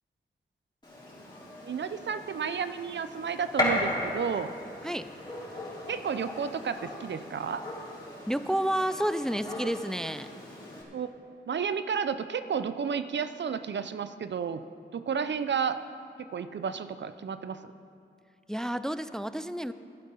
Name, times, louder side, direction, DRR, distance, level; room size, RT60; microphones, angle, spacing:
Gunshot gunfire, 0.8-10.8, left 1 dB, 25° left, 3.3 m, -36 dB
voice 1, 1.6-4.5 5.9-7.6 10.9-11.1 11.5-14.6 14.9-15.8 16.3-17.6, right 6 dB, 70° right, 11 dB, 0.6 m, -32 dB
voice 2, 8.3-10.3 18.5-19.7, equal, 5° left, 13 dB, 0.3 m, -30 dB
13.5 x 11.0 x 5.7 m, 2.5 s
wide cardioid pair, 125°, 19 cm